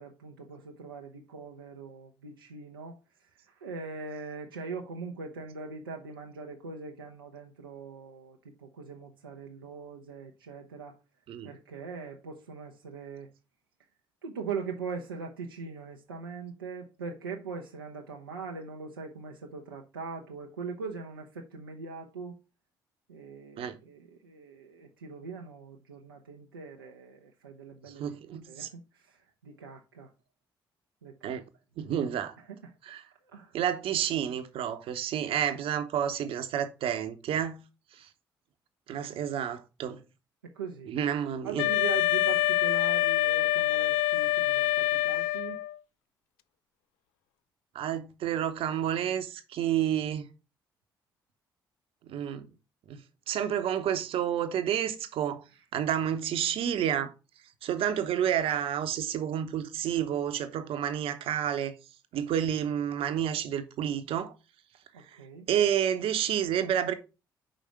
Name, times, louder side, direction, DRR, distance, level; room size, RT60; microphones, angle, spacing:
voice 1, 0.0-11.0 11.4-13.3 14.2-22.4 23.1-28.0 28.4-30.1 31.0-31.4 32.4-32.8 33.2-33.6 40.4-40.9 41.4-45.6 64.9-65.5, right 5 dB, 80° right, 0.6 m, -41 dB
voice 2, 28.0-28.7 31.2-31.4 31.8-32.3 32.9-33.0 33.5-37.6 38.0-38.1 38.9-40.0 40.9-41.6 47.7-50.3 52.1-52.5 52.9-53.0 53.3-55.4 55.7-57.1 57.6-61.7 62.1-64.3 65.5-66.9, right 9 dB, 55° right, 0.9 m, -30 dB
Wind instrument woodwind instrument, 41.6-45.8, left 16 dB, 65° left, 0.4 m, -26 dB
5.2 x 5.0 x 5.7 m
figure-of-eight pair, 45°, 11 cm